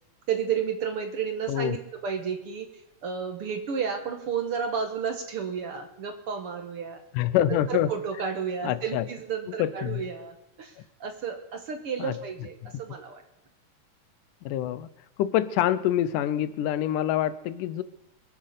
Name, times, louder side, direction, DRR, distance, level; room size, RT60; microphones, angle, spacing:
voice 1, 0.3-2.7 3.0-7.0 7.5-13.2, right 7 dB, 55° right, 6 dB, 1.9 m, -32 dB
voice 2, 7.1-7.9 8.6-9.0 9.6-10.0 12.0-12.1 14.5-14.9 15.2-17.8, left 12 dB, 80° left, 16 dB, 2.2 m, -26 dB
22.5 x 8.4 x 6.7 m, 0.87 s
omnidirectional pair, 3.7 m